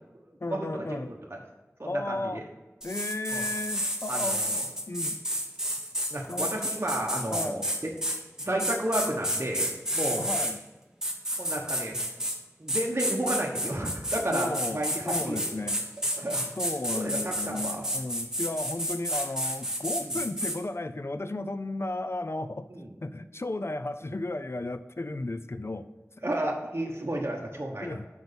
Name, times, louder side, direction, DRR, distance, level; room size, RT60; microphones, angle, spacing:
voice 1, 0.4-1.1 1.9-2.5 2.8-4.6 4.9-5.2 6.3-6.5 7.3-7.7 10.2-10.6 14.3-15.8 16.6-22.7 23.0-25.9 27.8-28.1, left 2 dB, 50° left, 12 dB, 0.4 m, -34 dB
voice 2, 1.1-1.4 1.8-2.4 3.3-3.4 4.1-4.6 6.1-7.9 8.4-9.7 9.9-10.3 11.4-12.0 12.6-15.7 16.2-16.4 16.9-17.8 20.0-20.2 22.7-22.9 26.2-28.1, right 1 dB, 45° right, -1 dB, 1.0 m, -32 dB
sound 1, 2.8-10.5 11.0-12.4 12.7-20.6, equal, 10° right, 1.3 m, -30 dB
6.1 x 5.4 x 6.8 m, 1.2 s
wide cardioid pair, 45°, 6 cm